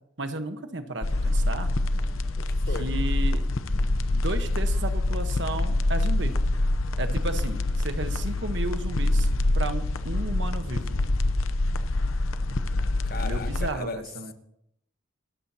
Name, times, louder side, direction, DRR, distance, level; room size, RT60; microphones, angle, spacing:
voice 1, 0.2-1.7 2.8-3.5 4.1-6.4 7.0-9.3 9.5-11.0 13.2-14.3, right 2 dB, 60° right, 8 dB, 1.2 m, -33 dB
sound 1, 1.0-13.7, left 2 dB, 85° left, 0.8 m, -25 dB
voice 2, 2.4-2.9 13.0-14.0, left 3 dB, 50° left, 8 dB, 1.1 m, -36 dB
27.0 x 13.5 x 2.9 m, 0.78 s
head